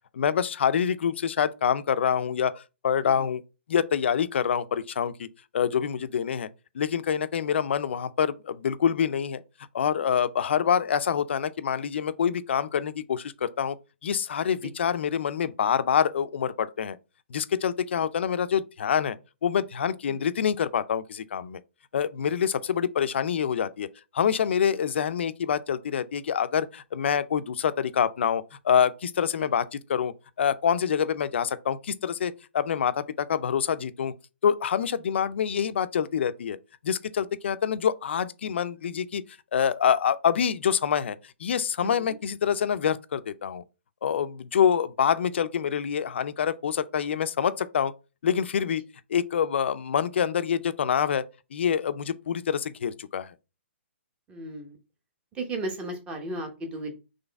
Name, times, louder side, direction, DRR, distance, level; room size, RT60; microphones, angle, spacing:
voice 1, 0.1-3.4 3.7-5.3 5.5-6.5 6.7-9.4 9.7-13.8 14.0-17.0 17.3-19.2 19.4-21.6 21.9-23.9 24.1-34.1 34.4-36.6 36.8-39.2 39.5-41.2 41.4-43.6 44.0-47.9 48.2-48.8 49.1-51.2 51.5-53.3, left 8 dB, 65° left, 0.4 m, -26 dB
voice 2, 41.8-42.1 54.3-54.8 55.3-56.9, right 2 dB, 15° right, 0.9 m, -35 dB
4.0 x 3.2 x 3.4 m
hypercardioid pair, 155°, 7 cm